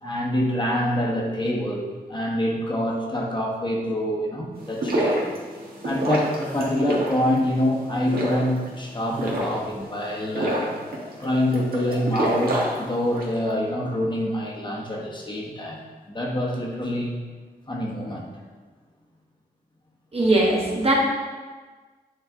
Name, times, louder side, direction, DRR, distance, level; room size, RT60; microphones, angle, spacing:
voice 1, 0.0-5.3 5.8-10.8 11.2-15.8 16.1-17.2 17.7-18.3, left 1 dB, 30° left, -3 dB, 1.1 m, -26 dB
sound 1, 4.6-13.4, right 1 dB, 75° right, 1.3 m, -29 dB
sound 2, 6.3-6.8 9.1-9.8, equal, 5° left, 1.4 m, -39 dB
voice 2, 20.1-20.9, right 2 dB, 40° right, -3 dB, 1.3 m, -20 dB
8.8 x 3.2 x 3.6 m, 1.4 s
wide cardioid pair, 90°, 16 cm